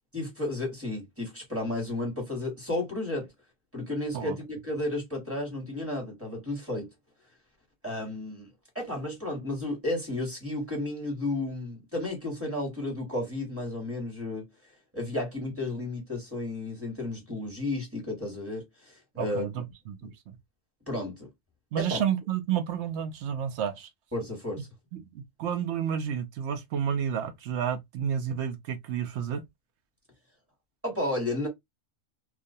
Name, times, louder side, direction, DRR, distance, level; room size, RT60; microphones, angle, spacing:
voice 1, 0.1-3.3 3.7-6.9 7.8-8.5 8.7-14.4 14.9-19.4 20.0-20.1 20.9-21.3 21.8-22.0 24.1-24.7 30.8-31.5, left 2 dB, 10° right, 1.1 m, -33 dB
voice 2, 19.2-20.4 21.7-23.9 24.9-29.4, right 8 dB, 65° right, 0.8 m, -31 dB
2.4 x 2.4 x 2.5 m
omnidirectional pair, 1.4 m